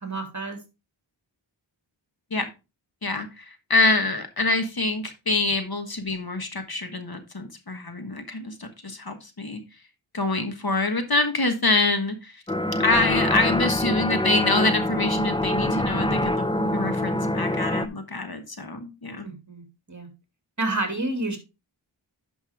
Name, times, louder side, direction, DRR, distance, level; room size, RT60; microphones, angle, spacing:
voice 1, 0.0-0.6 19.2-20.1 20.6-21.4, right 2 dB, 40° right, 4 dB, 2.6 m, -29 dB
voice 2, 3.0-9.6 10.1-12.4 12.8-16.4 16.7-19.3, left 2 dB, 50° left, 7 dB, 1.4 m, -25 dB
sound 1, 12.5-17.9, left 1 dB, 10° left, 0.6 m, -25 dB
11.0 x 5.4 x 3.5 m, 0.27 s
wide cardioid pair, 50°, 46 cm